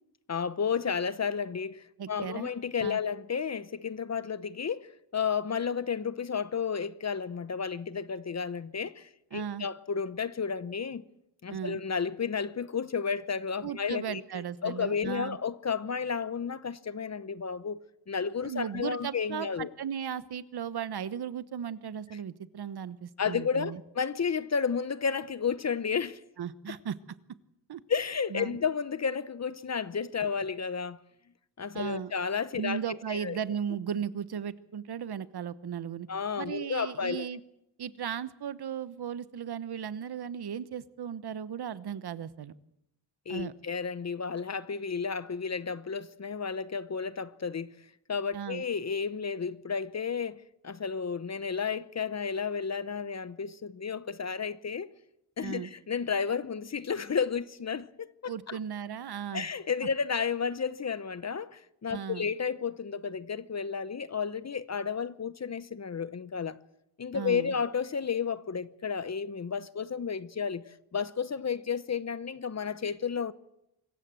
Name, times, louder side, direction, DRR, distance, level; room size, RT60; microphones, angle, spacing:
voice 1, 0.3-11.0 11.4-17.8 18.1-19.7 23.2-26.2 26.7-26.8 27.9-31.0 31.6-33.4 36.1-37.3 43.3-47.7 48.1-54.9 55.4-58.6 59.3-66.6 67.0-70.6 70.9-73.3, left 6 dB, 40° left, 0.8 m, -32 dB
voice 2, 2.0-2.5 2.8-3.0 9.3-9.7 11.5-11.8 13.6-15.4 18.4-23.8 26.4-27.0 27.7-27.8 28.3-28.6 31.7-32.1 32.6-36.1 36.4-37.4 37.8-42.5 43.3-43.5 48.3-48.6 55.4-55.7 58.3-59.5 61.9-62.3 67.1-67.5, right 8 dB, 65° right, 1.1 m, -36 dB
25.0 x 15.0 x 7.7 m
wide cardioid pair, 110°, 41 cm